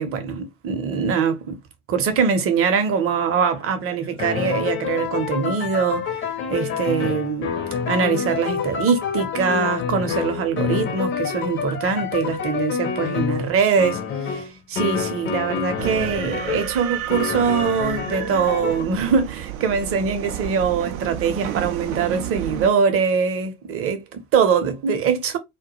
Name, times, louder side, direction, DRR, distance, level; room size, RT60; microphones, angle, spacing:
voice 1, 0.0-1.6 1.9-6.1 6.5-7.5 7.9-25.4, right 6 dB, 30° right, 0.7 m, -23 dB
sound 1, 3.5-16.7 17.1-18.8, left 6 dB, 30° left, 0.5 m, -27 dB
sound 2, 15.8-22.7, right 11 dB, 75° right, 0.5 m, -31 dB
2.2 x 2.2 x 2.8 m
figure-of-eight pair, 65°, 42 cm